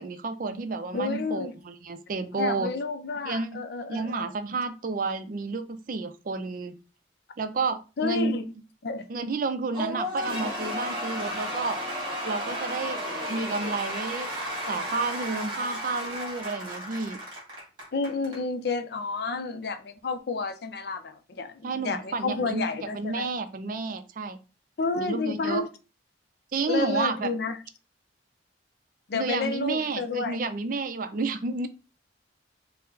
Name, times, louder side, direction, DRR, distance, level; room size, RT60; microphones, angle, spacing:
voice 1, 0.0-2.7 3.2-3.6 3.9-6.8 7.4-8.4 9.1-11.8 12.2-13.0 13.3-14.3 14.7-17.2 21.6-22.7 22.9-24.4 25.0-25.6 26.5-27.3 29.1-31.7, right 3 dB, 45° right, 0.4 m, -30 dB
voice 2, 0.9-1.5 2.4-4.3 8.0-8.5 8.8-9.1 17.9-23.3 24.8-25.7 26.7-27.6 29.1-30.4, left 4 dB, 55° left, 0.4 m, -30 dB
Cheering / Applause / Crowd, 9.7-18.4, equal, 25° right, 1.6 m, -33 dB
4.3 x 2.1 x 3.9 m
head